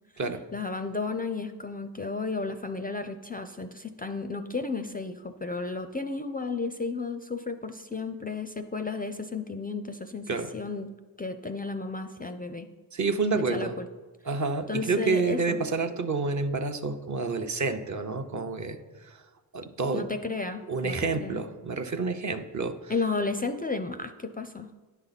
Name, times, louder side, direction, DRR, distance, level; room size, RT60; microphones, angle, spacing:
voice 1, 0.5-10.9 11.2-12.7 13.3-13.9 14.7-15.6 19.9-21.4 22.9-24.7, left 3 dB, 20° left, 9 dB, 0.4 m, -33 dB
voice 2, 12.9-13.7 14.3-19.2 19.5-20.0 20.7-22.8, right 4 dB, 40° right, 6 dB, 0.8 m, -29 dB
9.8 x 5.6 x 4.1 m, 1.3 s
cardioid pair, 50°, 45 cm